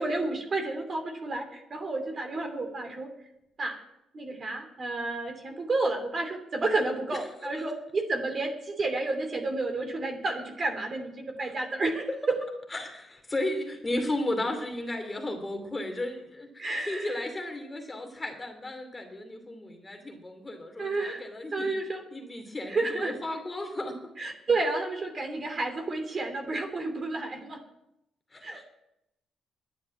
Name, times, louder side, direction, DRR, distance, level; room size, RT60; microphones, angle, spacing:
voice 1, 0.0-3.1 3.6-3.8 4.1-12.4 16.6-17.2 20.8-21.2 21.5-22.0 22.7-23.1 24.2-27.6 28.4-28.7, right 3 dB, 40° right, 4 dB, 3.0 m, -31 dB
voice 2, 12.7-21.7 22.1-24.0 28.3-28.6, left 1 dB, 20° left, 4 dB, 2.7 m, -34 dB
10.5 x 9.3 x 9.4 m, 0.85 s
cardioid pair, 90°, 0 cm